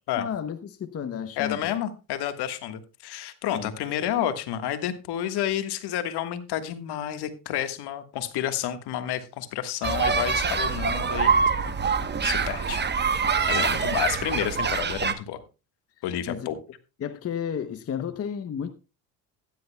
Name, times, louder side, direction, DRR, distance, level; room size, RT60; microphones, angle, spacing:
voice 1, 0.2-1.7 3.5-3.7 13.5-13.9 16.3-16.5 17.0-18.7, left 8 dB, 30° left, 0.9 m, -32 dB
voice 2, 1.4-11.3 12.2-12.8 13.5-15.4 16.0-16.6, left 11 dB, 60° left, 1.6 m, -30 dB
sound 1, 9.8-15.1, right 5 dB, 25° right, 1.1 m, -25 dB
15.5 x 10.5 x 2.3 m
supercardioid pair, 90°, 44 cm